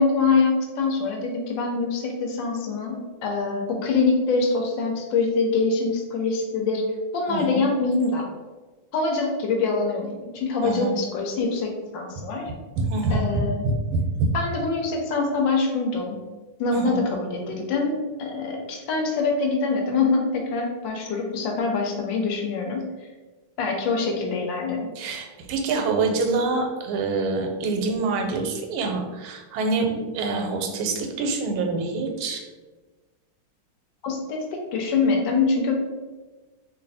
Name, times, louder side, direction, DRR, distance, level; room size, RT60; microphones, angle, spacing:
voice 1, 0.0-6.8 7.1-8.3 8.9-12.5 13.1-13.6 14.3-16.2 16.6-22.9 23.6-24.9 34.0-35.7, left 4 dB, 75° left, 2 dB, 1.2 m, -24 dB
voice 2, 7.3-7.6 10.6-11.0 12.8-14.3 16.7-17.1 25.0-32.4, right 3 dB, 90° right, 3 dB, 1.4 m, -26 dB
3.2 x 2.6 x 4.0 m, 1.3 s
omnidirectional pair, 2.2 m